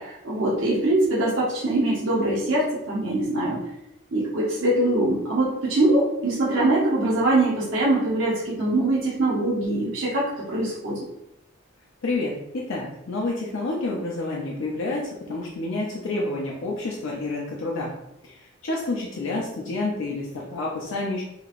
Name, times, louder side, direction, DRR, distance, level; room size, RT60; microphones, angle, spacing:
voice 1, 0.0-3.6 4.1-11.0, right 2 dB, 65° right, -7 dB, 0.8 m, -23 dB
voice 2, 12.0-17.9 18.2-21.2, left 2 dB, 65° left, -3 dB, 0.5 m, -29 dB
3.0 x 2.8 x 2.4 m, 0.86 s
head